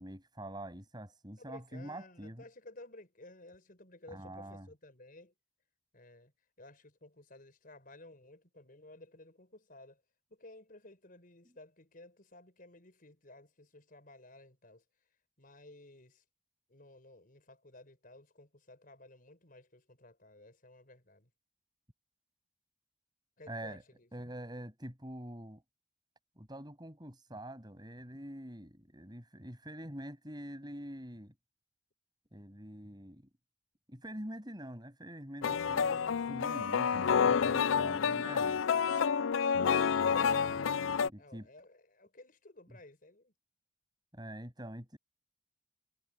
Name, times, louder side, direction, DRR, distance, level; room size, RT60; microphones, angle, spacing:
voice 1, 0.0-2.4 4.1-4.7 23.5-23.8 24.1-25.6 26.4-31.3 32.3-33.2 33.9-38.7 39.9-41.5 44.1-45.0, right 1 dB, 20° right, 7.7 m, -45 dB
voice 2, 1.4-5.3 5.9-6.3 6.6-10.0 10.3-14.8 15.4-16.2 16.7-21.3 23.4-24.1 41.2-43.3, left 2 dB, 45° left, 5.3 m, -55 dB
sound 1, 35.4-41.1, left 6 dB, 85° left, 0.4 m, -29 dB
head